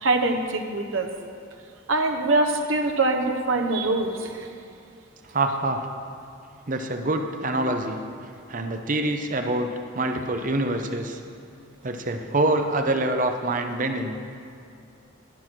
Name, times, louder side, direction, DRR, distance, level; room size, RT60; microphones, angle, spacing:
voice 1, 0.0-1.1 1.9-4.5, right 2 dB, 75° right, 3 dB, 0.9 m, -23 dB
voice 2, 5.3-5.8 6.7-8.0 8.5-9.7 9.9-11.2 11.8-14.2, right 2 dB, 40° right, 5 dB, 0.7 m, -25 dB
11.5 x 6.3 x 6.0 m, 2.5 s
head